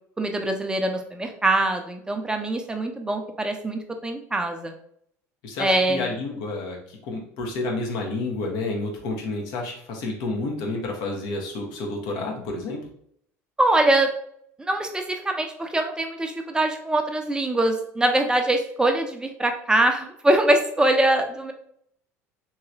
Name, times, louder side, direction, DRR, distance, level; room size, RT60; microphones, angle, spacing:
voice 1, 0.2-4.7 5.6-6.1 13.6-14.1 14.6-21.5, right 1 dB, 10° right, 4 dB, 0.6 m, -23 dB
voice 2, 5.4-12.8, left 2 dB, 60° left, 0 dB, 1.0 m, -30 dB
3.0 x 2.9 x 2.5 m, 0.67 s
hypercardioid pair, 70°, 8 cm